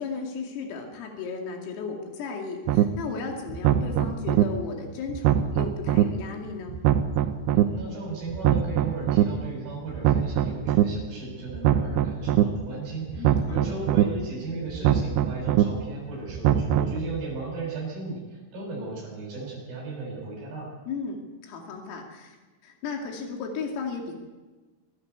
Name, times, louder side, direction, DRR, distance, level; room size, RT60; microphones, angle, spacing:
voice 1, 0.0-6.8 13.2-13.9 20.9-22.4 22.6-24.1, left 5 dB, 85° left, 1 dB, 5.1 m, -35 dB
sound 1, 2.7-2.8 3.5-4.4 5.1-6.0 6.7-7.6 8.3-9.2 9.9-10.8 11.5-12.4 13.1-14.0 14.7-15.6 16.3-17.0, right 11 dB, 75° right, 2.5 m, -22 dB
voice 2, 7.5-20.7, right 3 dB, 50° right, -4 dB, 8.7 m, -35 dB
25.5 x 14.5 x 8.3 m, 1.3 s
omnidirectional pair, 5.8 m